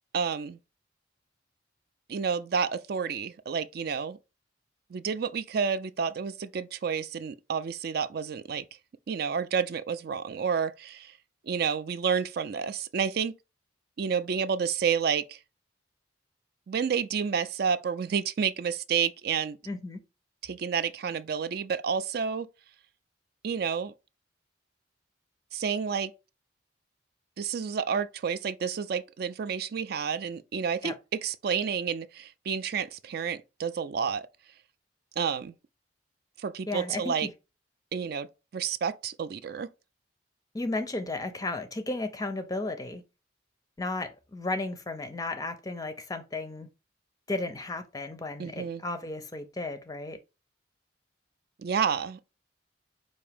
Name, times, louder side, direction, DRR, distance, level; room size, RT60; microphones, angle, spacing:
voice 1, 0.1-0.6 2.1-4.2 4.9-8.7 9.1-11.1 11.4-13.4 14.0-15.4 16.7-19.6 20.4-22.5 23.4-23.9 25.5-26.1 27.4-34.3 35.2-35.5 36.4-37.3 37.9-38.3 38.5-39.7 48.4-48.8 51.6-52.3, right 6 dB, 55° right, 0.4 m, -30 dB
voice 2, 19.7-20.0 30.8-30.9 36.7-37.3 40.5-43.0 43.8-46.7 47.3-50.2, left 2 dB, 20° left, 0.5 m, -34 dB
4.8 x 2.6 x 3.4 m
head